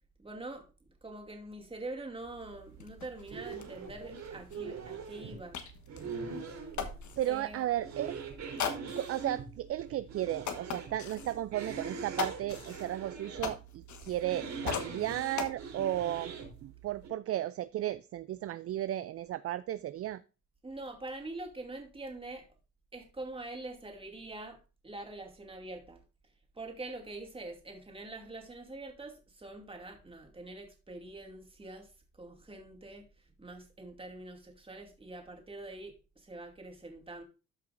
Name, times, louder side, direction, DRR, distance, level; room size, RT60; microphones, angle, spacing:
voice 1, 0.2-0.7 1.0-5.6 7.3-7.6 20.6-22.5 22.9-24.6 24.8-26.0 26.5-31.9 32.1-33.1 33.4-37.2, right 2 dB, 20° right, 2.5 m, -44 dB
sound 1, 2.2-17.1, right 5 dB, 70° right, 3.7 m, -43 dB
sound 2, 2.4-2.5 2.8-7.5 8.6-9.3 9.8-9.9 10.4-11.4 12.2-14.4 14.6-15.5, left 7 dB, 70° left, 1.4 m, -40 dB
voice 2, 7.2-8.2 9.0-16.3 16.6-20.2, right 13 dB, 50° right, 0.4 m, -34 dB
13.0 x 5.5 x 2.6 m
cardioid pair, 90°, 30 cm